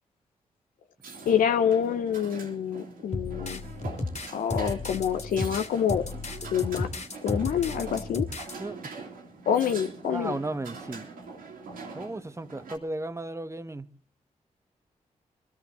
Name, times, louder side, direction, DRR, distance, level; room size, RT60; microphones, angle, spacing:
sound 1, 1.0-12.8, right 4 dB, 90° right, 2.5 m, -43 dB
voice 1, 1.3-3.6 4.3-6.0 6.5-6.9 7.2-8.3 9.5-10.3, left 8 dB, 85° left, 0.8 m, -26 dB
sound 2, 3.1-8.6, left 3 dB, 55° left, 2.3 m, -34 dB
voice 2, 8.6-9.0 10.1-11.1 11.9-13.9, right 2 dB, 20° right, 1.1 m, -35 dB
21.5 x 12.5 x 4.1 m
supercardioid pair, 40°, 14 cm